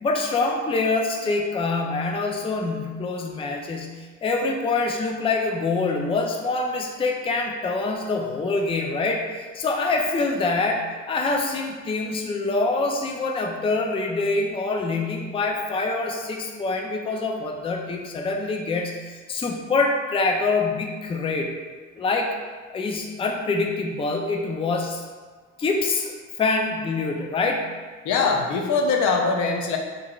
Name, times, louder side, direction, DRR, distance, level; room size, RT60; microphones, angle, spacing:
voice 1, 0.0-21.5 21.9-22.3 22.7-25.0 25.6-26.1 26.4-27.7, left 3 dB, 20° left, 1 dB, 0.4 m, -25 dB
voice 2, 28.0-29.8, left 4 dB, 75° left, 2 dB, 0.6 m, -22 dB
3.8 x 3.1 x 2.3 m, 1.5 s
cardioid pair, 90°, 30 cm